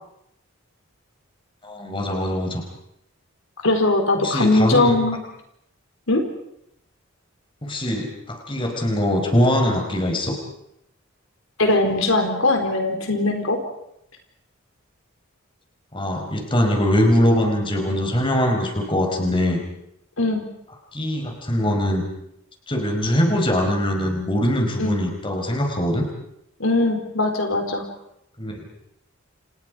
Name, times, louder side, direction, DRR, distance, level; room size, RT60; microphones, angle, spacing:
voice 1, 1.6-2.6 4.2-4.9 7.6-10.4 15.9-19.6 20.9-22.0 22.7-26.1 28.4-28.6, equal, 25° left, 3 dB, 4.9 m, -22 dB
voice 2, 3.6-5.2 6.1-6.2 11.6-13.6 20.2-20.4 24.8-24.9 26.6-27.9, left 2 dB, 75° left, 4 dB, 4.2 m, -20 dB
29.5 x 28.5 x 5.1 m, 0.78 s
head